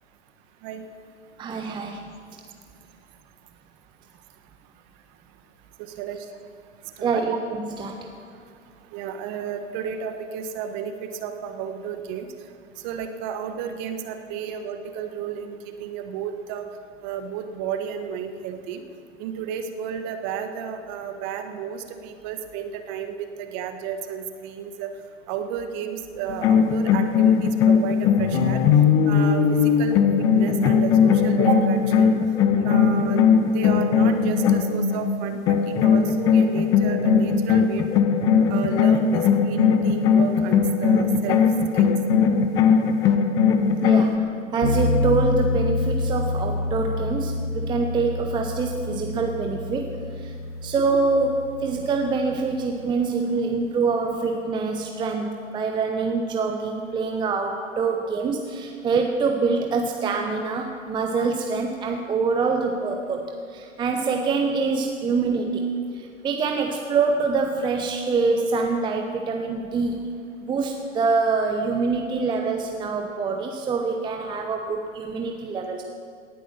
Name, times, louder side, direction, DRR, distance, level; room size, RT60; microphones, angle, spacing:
voice 1, 1.4-2.0 7.0-7.9 43.8-50.3 50.6-65.6 66.2-70.0 70.4-75.8, right 4 dB, 10° right, 3 dB, 0.8 m, -25 dB
voice 2, 5.8-6.3 7.0-7.2 8.9-12.3 12.8-16.7 17.0-18.8 19.2-24.9 25.3-28.6 29.1-32.1 32.6-38.1 38.5-41.4 41.7-42.0, right 8 dB, 35° right, 7 dB, 1.5 m, -32 dB
sound 1, 26.3-35.1 35.5-44.1, left 6 dB, 10° left, 0.4 m, -19 dB
sound 2, 44.6-52.8, left 2 dB, 55° left, 2.2 m, -28 dB
18.0 x 10.0 x 7.4 m, 2.3 s
hypercardioid pair, 120°, 40 cm